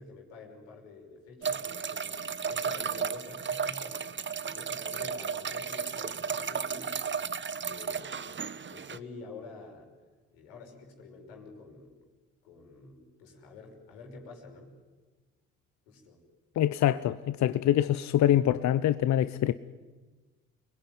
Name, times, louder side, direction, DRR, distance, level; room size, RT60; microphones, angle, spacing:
voice 1, 0.0-2.1 2.5-7.2 7.7-9.9 10.3-12.1 12.4-14.8 15.9-16.2, left 3 dB, 75° left, 5.7 m, -48 dB
sound 1, 1.4-9.0, right 6 dB, 30° right, 1.2 m, -34 dB
voice 2, 16.6-19.5, left 12 dB, 50° left, 0.9 m, -25 dB
29.5 x 21.0 x 9.7 m
hypercardioid pair, 50°, 37 cm